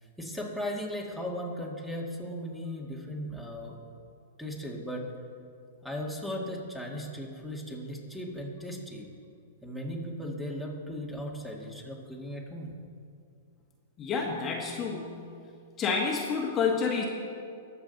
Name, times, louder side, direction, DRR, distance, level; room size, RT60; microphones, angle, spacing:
voice 1, 0.2-3.8 4.4-5.0 5.8-9.0 9.6-12.7, equal, ahead, -1 dB, 1.9 m, -37 dB
voice 2, 14.0-15.2 15.8-17.1, left 5 dB, 25° left, -1 dB, 1.5 m, -29 dB
20.5 x 7.3 x 4.1 m, 2.4 s
hypercardioid pair, 125°, 0 cm